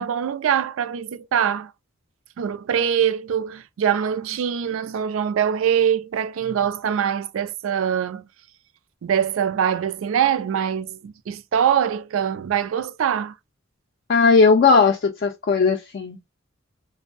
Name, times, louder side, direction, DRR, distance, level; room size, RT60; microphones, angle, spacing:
voice 1, 0.0-1.7 2.4-8.2 9.0-13.3, right 8 dB, 75° right, 0.3 m, -23 dB
voice 2, 14.1-16.2, left 4 dB, 50° left, 0.4 m, -17 dB
2.5 x 2.0 x 2.4 m
head